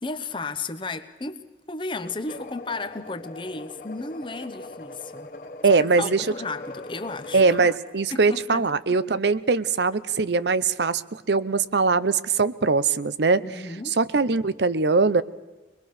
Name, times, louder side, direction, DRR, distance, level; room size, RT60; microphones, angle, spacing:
voice 1, 0.0-1.4 1.7-5.3 5.6-7.7 8.1-8.7 13.4-14.0, left 3 dB, 25° left, 11 dB, 1.0 m, -34 dB
sound 1, 2.0-7.8, left 2 dB, 50° left, 1.4 m, -40 dB
voice 2, 5.6-6.2 7.3-13.4 14.0-15.2, right 4 dB, 70° right, 15 dB, 0.7 m, -21 dB
23.5 x 21.5 x 6.6 m, 1.1 s
head